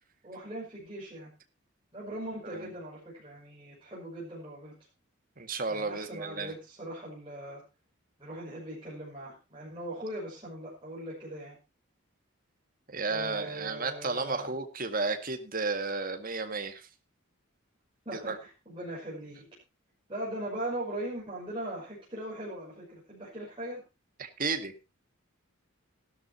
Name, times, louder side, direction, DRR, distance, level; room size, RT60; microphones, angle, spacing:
voice 1, 0.2-1.3 1.9-4.7 5.7-7.6 8.2-11.6 13.1-14.6 18.0-19.4 20.1-23.8, right 1 dB, 25° right, -7 dB, 6.3 m, -40 dB
voice 2, 5.4-6.5 12.9-16.9 18.1-18.4 24.2-24.7, right 3 dB, 40° right, 6 dB, 2.0 m, -33 dB
16.5 x 12.5 x 2.8 m, 0.28 s
head